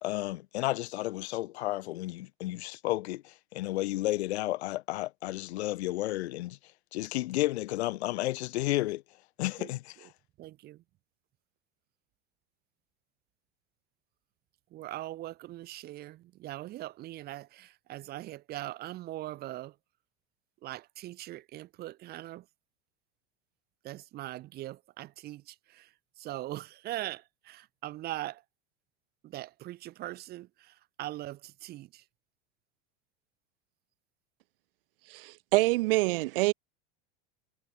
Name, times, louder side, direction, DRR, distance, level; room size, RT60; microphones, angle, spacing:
voice 1, 0.0-6.6 6.9-9.0 9.4-9.9, left 17 dB, 80° left, 2.6 m, -32 dB
voice 2, 10.4-10.8 14.7-19.8 20.6-22.5 23.8-28.4 29.2-32.0, right 15 dB, 30° right, 4.4 m, -41 dB
voice 3, 35.1-36.5, right 21 dB, 60° right, 0.5 m, -26 dB
supercardioid pair, 175°, 32 cm